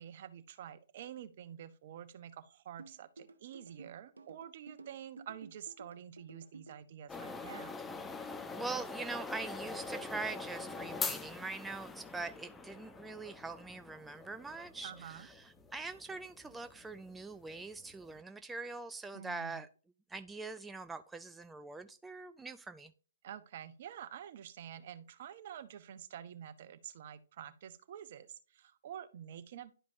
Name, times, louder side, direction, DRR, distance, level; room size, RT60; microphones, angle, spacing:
voice 1, 0.0-7.8 14.8-15.3 19.1-19.6 23.2-29.7, right 10 dB, 50° right, 0.8 m, -48 dB
sound 1, 2.8-6.8, right 3 dB, 80° right, 1.0 m, -53 dB
sound 2, 7.1-18.2, left 4 dB, 10° left, 0.9 m, -44 dB
voice 2, 8.6-19.7 20.1-22.9, right 3 dB, 10° right, 0.4 m, -43 dB
11.0 x 5.1 x 2.7 m
figure-of-eight pair, 125°, 0 cm